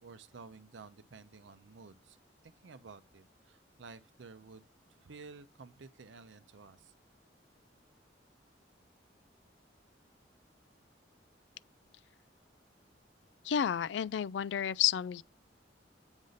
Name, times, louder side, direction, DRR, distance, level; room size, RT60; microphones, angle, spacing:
voice 1, 0.0-2.2 2.4-6.9, right 4 dB, 85° right, 0.6 m, -53 dB
voice 2, 13.4-15.2, left 9 dB, 70° left, 0.3 m, -31 dB
8.0 x 4.0 x 6.4 m
head